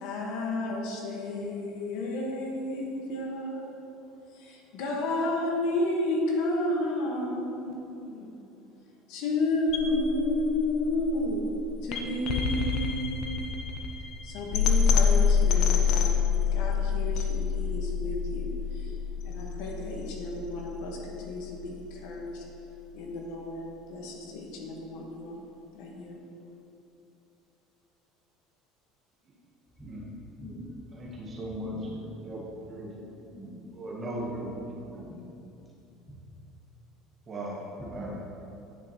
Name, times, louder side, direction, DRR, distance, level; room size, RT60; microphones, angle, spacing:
voice 1, 0.0-3.9 4.3-8.3 9.1-11.4 11.8-13.4 14.2-16.2 16.5-18.9 19.2-22.4 22.9-23.6 23.9-25.4 25.7-26.2, left 2 dB, 65° left, -1 dB, 1.3 m, -32 dB
sound 1, 9.7-21.7, left 6 dB, 50° left, 0.8 m, -27 dB
voice 2, 30.9-33.1 33.7-34.5 34.9-35.0 37.3-37.6 37.9-38.1, right 1 dB, 25° right, -3 dB, 1.1 m, -38 dB
voice 3, 33.2-33.7 34.8-35.2 37.8-38.1, right 1 dB, 5° left, -5 dB, 1.5 m, -44 dB
9.7 x 6.7 x 3.0 m, 2.8 s
cardioid pair, 155°, 0 cm